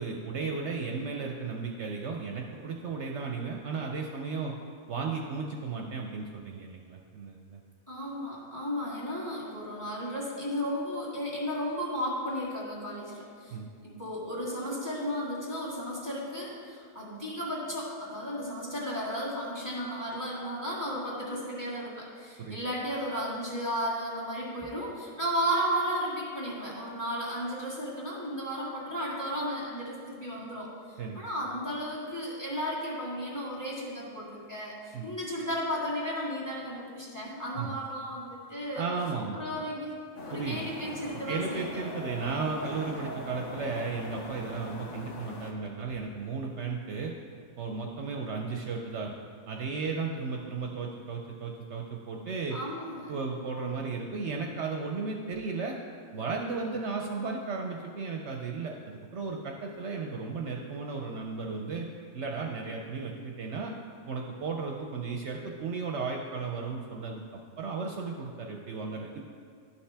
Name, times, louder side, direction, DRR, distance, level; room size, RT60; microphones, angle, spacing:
voice 1, 0.0-4.5 4.9-7.6 13.5-13.7 22.4-22.6 31.0-31.3 34.9-35.1 37.5-37.8 38.7-39.4 40.3-40.7 41.3-47.1 47.6-49.1 49.5-52.6 53.1-55.8 56.1-61.9 62.1-63.7 64.1-67.2 67.6-69.2, right 4 dB, 65° right, 1 dB, 0.8 m, -35 dB
voice 2, 7.9-13.6 13.8-30.7 31.1-38.8 39.3-40.0 40.2-41.8 52.5-53.1, equal, 15° left, -6 dB, 1.8 m, -34 dB
sound 1, 40.2-45.5, left 2 dB, 65° left, 1.1 m, -41 dB
12.0 x 5.6 x 3.4 m, 2.2 s
omnidirectional pair, 1.4 m